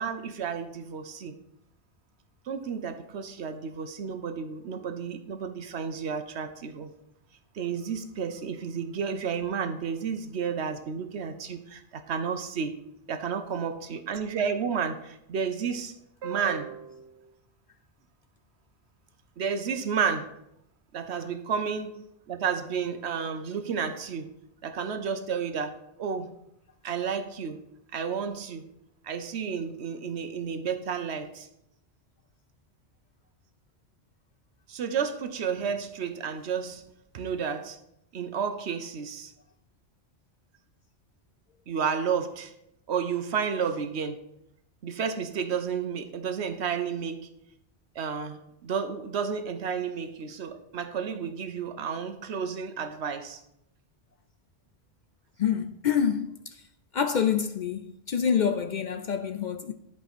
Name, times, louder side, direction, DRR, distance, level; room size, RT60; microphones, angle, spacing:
voice 1, 0.0-1.4 2.5-6.9 7.5-12.7 13.1-15.9 16.2-17.2 19.4-20.3 20.9-24.3 24.6-25.7 26.0-26.3 26.8-27.6 27.9-28.6 29.0-31.5 34.7-36.8 37.1-37.8 38.1-39.3 41.7-42.5 42.9-44.2 44.8-47.3 48.0-53.4, right 6 dB, 80° right, 1.1 m, -31 dB
voice 2, 55.4-56.6 56.9-59.7, left 7 dB, 60° left, 0.5 m, -27 dB
10.5 x 4.8 x 4.2 m
omnidirectional pair, 1.1 m